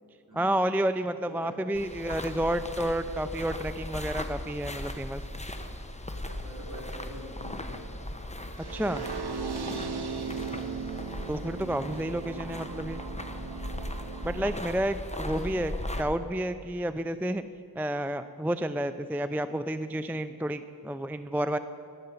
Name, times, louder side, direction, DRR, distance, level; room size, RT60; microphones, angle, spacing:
voice 1, 0.3-5.2 8.7-9.0 11.3-13.0 14.2-17.4 17.8-21.6, right 1 dB, 5° right, 11 dB, 0.4 m, -30 dB
voice 2, 1.2-2.0 6.2-7.8 10.4-10.7 15.3-15.5, right 1 dB, 50° right, -1 dB, 3.1 m, -45 dB
sound 1, 1.7-16.0, left 1 dB, 15° left, 1.0 m, -38 dB
sound 2, 6.9-12.0, left 2 dB, 75° left, 3.2 m, -48 dB
sound 3, 8.6-14.6, right 6 dB, 80° right, 0.8 m, -38 dB
13.0 x 6.7 x 9.8 m, 2.6 s
wide cardioid pair, 40°, 39 cm